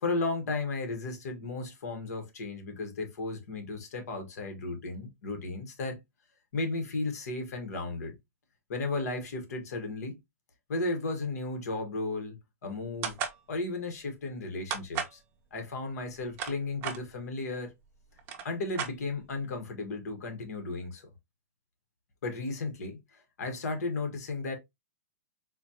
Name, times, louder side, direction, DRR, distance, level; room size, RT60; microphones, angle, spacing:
voice 1, 0.0-6.0 6.5-8.1 8.7-10.2 10.7-13.2 13.5-15.2 15.5-17.7 18.4-21.1 22.2-23.0 23.4-24.5, left 3 dB, 75° left, 1.3 m, -34 dB
sound 1, 13.0-13.4 14.7-15.2 16.1-17.0 17.8-17.9 18.2-19.4, right 7 dB, 25° right, 0.6 m, -34 dB
4.1 x 2.3 x 2.7 m
hypercardioid pair, 160°, 9 cm